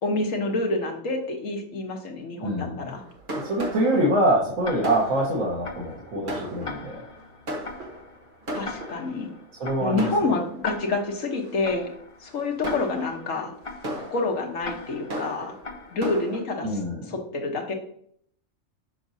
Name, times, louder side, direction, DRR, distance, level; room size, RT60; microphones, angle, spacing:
voice 1, 0.0-3.0 8.5-9.3 9.8-11.9 12.2-13.5 13.9-15.6 15.9-16.8 17.1-17.7, left 3 dB, 70° left, 1 dB, 1.6 m, -28 dB
voice 2, 2.4-2.9 3.4-7.0 9.6-10.1 16.6-17.1, right 1 dB, 85° right, -4 dB, 1.7 m, -25 dB
Fireworks, 2.9-9.3 10.0-10.9 11.4-11.7 12.3-16.4, right 1 dB, 40° right, 1.3 m, -36 dB
Tick-tock, 4.6-16.5, left 3 dB, 45° left, 0.4 m, -42 dB
6.9 x 6.0 x 2.7 m, 0.66 s
omnidirectional pair, 1.4 m